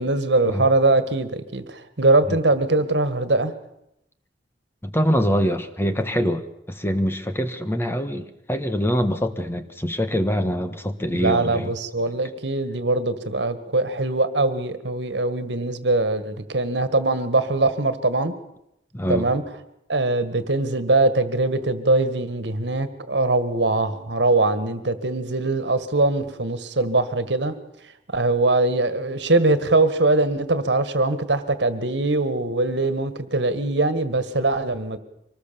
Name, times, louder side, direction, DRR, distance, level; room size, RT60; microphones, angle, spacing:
voice 1, 0.0-3.5 11.1-18.3 19.1-19.4 19.9-27.5 28.1-35.0, right 2 dB, 75° right, 12 dB, 1.8 m, -22 dB
voice 2, 4.8-11.7 18.9-19.3, equal, 15° left, 9 dB, 1.3 m, -24 dB
24.5 x 19.5 x 7.1 m, 0.80 s
head